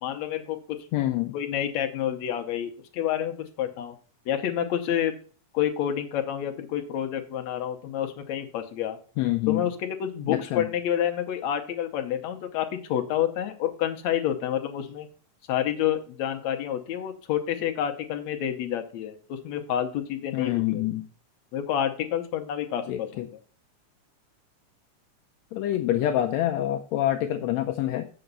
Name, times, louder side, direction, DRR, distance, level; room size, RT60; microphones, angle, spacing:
voice 1, 0.0-0.8 1.3-4.0 4.3-5.2 5.5-9.0 9.5-15.1 15.5-20.8 21.5-23.3, left 10 dB, 70° left, 1.9 m, -29 dB
voice 2, 0.9-1.4 9.2-9.6 10.3-10.7 20.3-21.1 22.9-23.3 25.5-28.1, left 13 dB, 90° left, 1.5 m, -26 dB
7.7 x 7.0 x 5.4 m
omnidirectional pair, 3.7 m